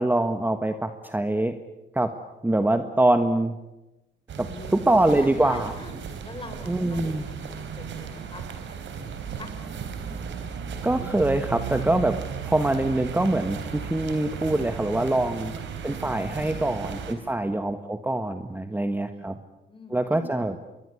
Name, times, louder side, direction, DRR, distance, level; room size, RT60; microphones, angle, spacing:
voice 1, 0.0-1.5 1.9-2.1 2.4-3.6 4.4-5.7 6.7-7.2 10.8-15.5 15.8-19.4 19.9-20.5, right 1 dB, 10° right, 8 dB, 1.4 m, -24 dB
sound 1, 4.3-17.1, right 7 dB, 70° right, 4.0 m, -35 dB
voice 2, 4.4-4.8 5.1-5.9 6.2-9.5 16.3-17.4 18.7-19.4 19.7-20.3, left 3 dB, 25° left, 7 dB, 5.6 m, -45 dB
27.0 x 21.5 x 8.3 m, 1.0 s
cardioid pair, 90°, 20 cm